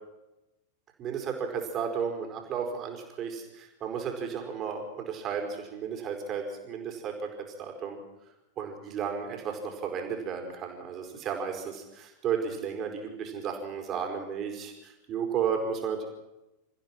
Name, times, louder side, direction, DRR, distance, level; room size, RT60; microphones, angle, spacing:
voice 1, 1.0-7.3 7.6-8.0 8.6-16.1, right 6 dB, 30° right, 3 dB, 5.0 m, -33 dB
29.0 x 15.0 x 6.1 m, 0.96 s
figure-of-eight pair, 90°, 0 cm